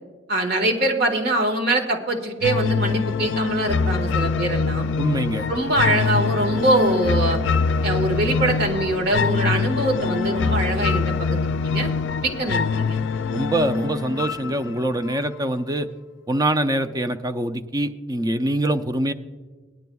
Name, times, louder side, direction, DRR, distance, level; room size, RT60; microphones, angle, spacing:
voice 1, 0.3-4.9 5.5-7.4 7.8-11.9 12.2-13.0, right 2 dB, 55° right, 2 dB, 1.6 m, -23 dB
sound 1, 2.4-15.4, left 5 dB, 70° left, 0.4 m, -24 dB
voice 2, 5.0-5.5 13.3-15.9 16.3-19.1, right 1 dB, 20° right, 8 dB, 0.5 m, -24 dB
19.0 x 10.5 x 2.3 m, 1.4 s
head